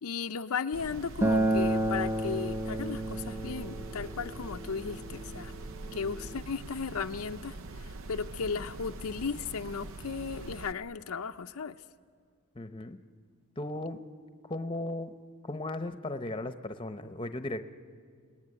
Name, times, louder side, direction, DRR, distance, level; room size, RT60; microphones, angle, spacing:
voice 1, 0.0-5.5 5.9-11.8, left 5 dB, 75° left, 7 dB, 0.6 m, -36 dB
sound 1, 0.7-10.7, right 2 dB, 65° right, 0.7 m, -43 dB
Acoustic guitar, 1.2-6.4, right 1 dB, 10° right, 0.6 m, -31 dB
voice 2, 12.5-13.0 13.6-14.0 14.4-15.1 15.4-17.6, left 2 dB, 25° left, 10 dB, 0.9 m, -36 dB
29.5 x 19.0 x 9.8 m, 2.1 s
head